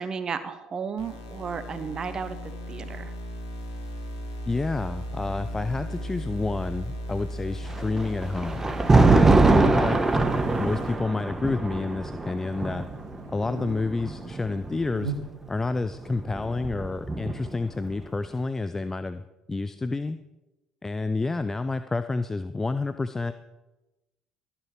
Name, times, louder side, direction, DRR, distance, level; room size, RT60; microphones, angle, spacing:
voice 1, 0.0-3.1, right 6 dB, 35° right, 11 dB, 0.9 m, -34 dB
sound 1, 1.0-11.0, equal, 75° left, 1.9 m, -36 dB
Buzz, 4.3-15.7, right 4 dB, 80° right, 1.4 m, -45 dB
voice 2, 4.5-8.7 9.0-10.0 10.6-12.8 13.3-15.1 15.5-19.2 19.5-20.2 20.8-23.3, left 3 dB, 20° left, 11 dB, 0.5 m, -29 dB
Thunder, 7.7-14.9 15.9-17.7, right 3 dB, 20° right, 1.1 m, -23 dB
13.0 x 7.9 x 5.8 m, 1.0 s
hypercardioid pair, 60°, 2 cm